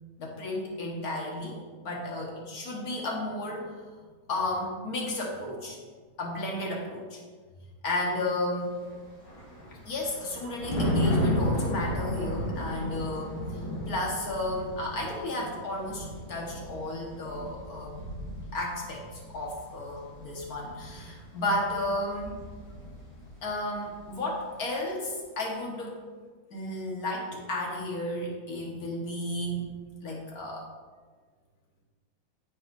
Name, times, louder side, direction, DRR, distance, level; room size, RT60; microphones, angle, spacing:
voice 1, 0.2-3.8 4.3-5.8 6.2-7.2 7.8-8.7 9.9-13.4 13.9-18.0 18.5-22.3 23.4-26.0 26.5-29.7 30.0-30.7, left 1 dB, 50° left, -2 dB, 1.9 m, -33 dB
Thunder, 8.8-23.4 23.7-24.0, equal, 80° left, 3.6 m, -34 dB
9.9 x 7.6 x 2.7 m, 1.5 s
omnidirectional pair, 2.2 m